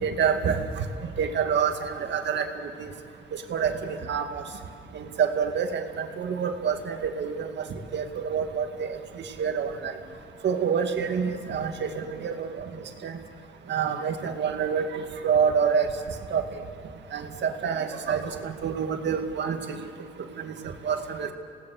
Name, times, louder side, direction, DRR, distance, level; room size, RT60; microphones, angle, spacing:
voice 1, 0.0-0.6 1.2-2.5 2.8-2.9 3.5-4.4 4.9-7.5 7.9-8.9 9.4-9.9 10.4-12.5 13.0-13.1 13.7-15.9 16.3-16.4 17.1-19.9 20.4-20.5 20.8-21.3, right 7 dB, 65° right, 5 dB, 2.2 m, -27 dB
27.0 x 18.0 x 6.6 m, 2.5 s
cardioid pair, 90°, 20 cm